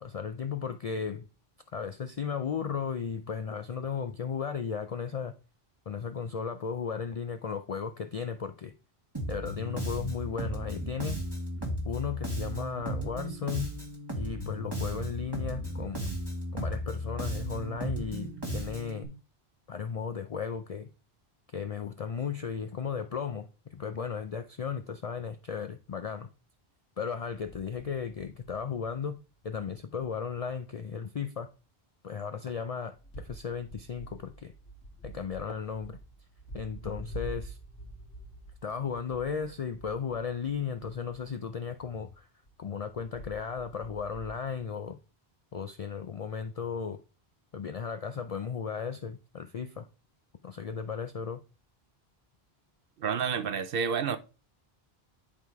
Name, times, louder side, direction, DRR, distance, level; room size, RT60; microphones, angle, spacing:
voice 1, 0.0-1.2 1.7-5.3 5.9-8.7 9.3-11.2 11.8-13.7 14.1-16.0 16.5-19.1 19.7-20.9 21.5-26.3 27.0-31.5 32.0-34.5 35.0-36.0 36.5-37.6 38.6-42.3 42.6-45.0 45.5-47.0 47.5-49.9 50.4-51.4, left 6 dB, 50° left, 0.5 m, -35 dB
Bass guitar, 9.1-19.0, right 1 dB, 25° right, 1.9 m, -35 dB
sound 1, 27.4-29.1 29.4-30.1 30.4-30.6 32.9-41.5 41.8-44.7, right 1 dB, 85° left, 2.0 m, -47 dB
voice 2, 53.0-54.2, right 6 dB, 65° right, 0.8 m, -29 dB
10.5 x 3.6 x 4.6 m
omnidirectional pair, 1.1 m